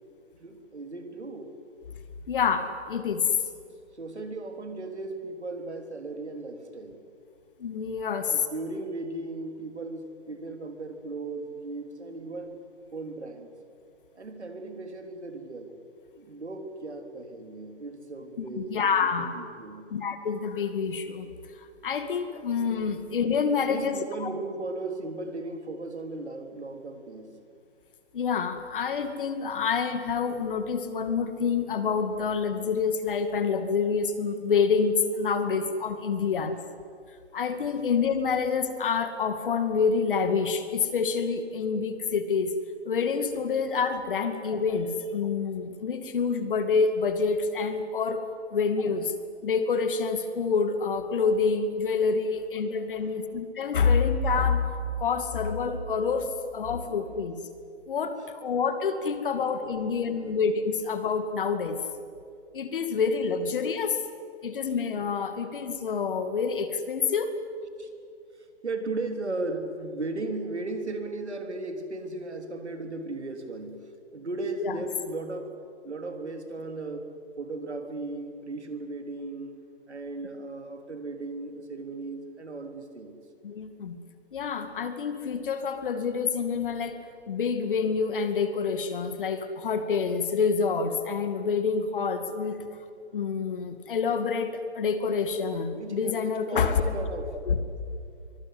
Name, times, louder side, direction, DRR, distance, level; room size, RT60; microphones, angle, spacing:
voice 1, 0.4-1.6 3.9-7.0 8.3-12.6 12.9-13.5 14.2-15.8 16.2-19.9 23.7-27.4 53.0-53.1 59.8-59.9 60.2-60.3 67.8-67.9 68.4-75.6 75.8-77.1 77.4-79.5 79.9-83.2 95.7-97.4, right 2 dB, 80° right, 6 dB, 3.6 m, -36 dB
voice 2, 2.3-3.2 7.6-8.4 18.4-19.3 19.9-21.3 21.6-24.3 28.1-36.6 37.3-42.5 42.9-48.2 48.5-49.1 49.4-54.7 55.0-57.3 57.9-61.8 62.5-64.0 64.4-67.3 74.6-74.8 83.4-84.0 84.3-87.0 87.3-92.6 93.1-96.9 97.5-97.6, left 5 dB, 50° left, 9 dB, 2.4 m, -27 dB
24.0 x 20.0 x 9.6 m, 2.3 s
figure-of-eight pair, 145°, 33 cm